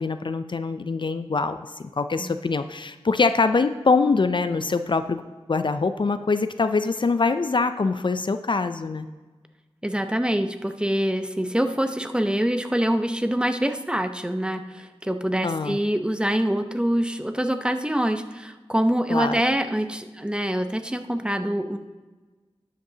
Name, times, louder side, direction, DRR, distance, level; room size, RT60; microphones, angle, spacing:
voice 1, 0.0-5.2 5.5-9.1 15.4-15.8 19.1-19.4, left 4 dB, 50° left, 10 dB, 0.4 m, -24 dB
voice 2, 9.8-21.8, equal, 10° right, 8 dB, 0.7 m, -25 dB
12.0 x 7.7 x 2.8 m, 1.3 s
cardioid pair, 45°, 11 cm